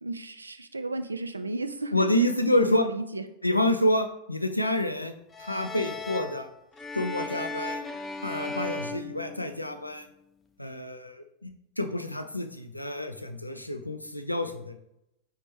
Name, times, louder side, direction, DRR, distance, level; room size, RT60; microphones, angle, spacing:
voice 1, 0.0-1.9 2.5-3.2, right 2 dB, 80° right, 10 dB, 0.4 m, -33 dB
voice 2, 1.9-2.9 3.4-5.1 5.4-6.5 6.9-7.8 8.2-10.1 10.6-14.8, left 1 dB, 85° left, 7 dB, 0.4 m, -28 dB
sound 1, 5.3-9.9, left 3 dB, 15° left, 0.5 m, -37 dB
5.1 x 3.2 x 3.0 m, 0.84 s
figure-of-eight pair, 90°, 0 cm